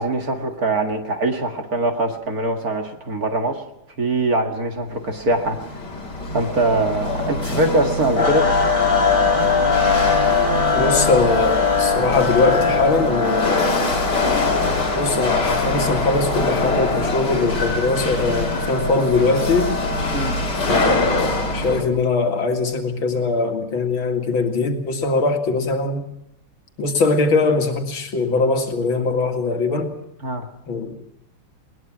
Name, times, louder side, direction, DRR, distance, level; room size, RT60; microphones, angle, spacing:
voice 1, 0.0-3.6 4.0-5.6 6.3-8.5 20.1-20.4 30.2-30.5, right 2 dB, 45° right, 4 dB, 2.3 m, -22 dB
Chatter / Hiss / Rattle, 4.9-21.8, left 2 dB, 50° left, 3.7 m, -24 dB
sound 1, 8.2-20.5, left 4 dB, 25° left, 2.9 m, -22 dB
voice 2, 10.7-13.8 14.9-19.7 20.7-26.0 26.8-29.9 30.7-30.9, left 3 dB, 70° left, 4 dB, 2.9 m, -21 dB
21.0 x 20.0 x 6.1 m, 0.80 s
omnidirectional pair, 2.3 m